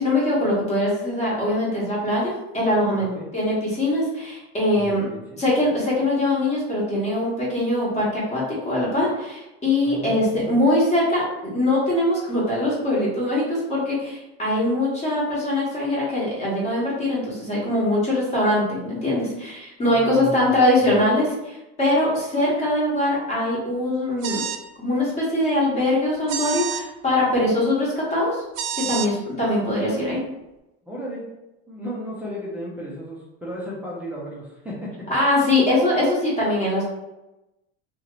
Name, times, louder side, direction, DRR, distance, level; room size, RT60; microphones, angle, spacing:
voice 1, 0.0-5.0 5.4-24.4 24.8-28.4 28.9-30.2 35.1-36.8, left 1 dB, 20° left, -6 dB, 1.0 m, -22 dB
voice 2, 4.7-5.4 9.8-10.5 19.8-21.0 29.7-30.3 30.9-31.3 31.7-35.4, equal, 5° right, -7 dB, 0.4 m, -35 dB
sound 1, 24.2-24.6 26.3-26.8 28.5-29.1, right 8 dB, 75° right, 0.5 m, -28 dB
2.8 x 2.5 x 3.0 m, 0.96 s
cardioid pair, 155°, 32 cm